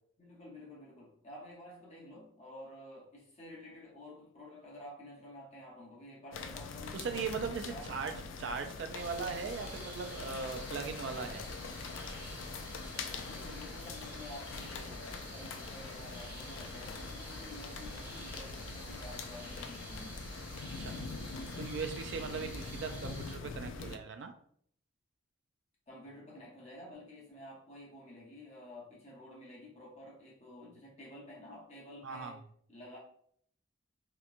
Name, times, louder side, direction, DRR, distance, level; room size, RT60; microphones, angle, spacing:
voice 1, 0.2-7.0 7.6-7.8 13.3-20.2 20.9-21.1 23.7-24.0 25.9-32.4 32.7-33.0, left 1 dB, 30° left, -4 dB, 0.8 m, -51 dB
sound 1, 6.3-24.0, left 4 dB, 85° left, 0.3 m, -44 dB
voice 2, 6.9-8.1 8.4-11.5 20.8-20.9 21.6-24.3 32.0-32.3, right 5 dB, 65° right, 6 dB, 0.3 m, -39 dB
sound 2, 8.9-23.4, equal, 25° right, 0.9 m, -48 dB
2.9 x 2.1 x 2.4 m, 0.63 s
head